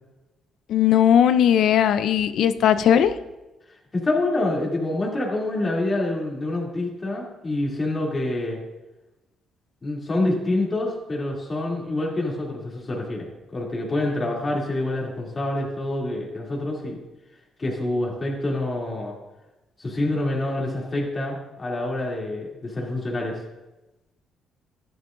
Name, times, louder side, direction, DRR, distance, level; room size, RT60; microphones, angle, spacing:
voice 1, 0.7-3.1, left 9 dB, 75° left, 11 dB, 0.6 m, -18 dB
voice 2, 3.9-8.6 9.8-16.9 17.6-19.2 19.8-23.4, left 2 dB, 30° left, -3 dB, 2.9 m, -26 dB
14.5 x 11.0 x 2.6 m, 1.0 s
cardioid pair, 90°, 0 cm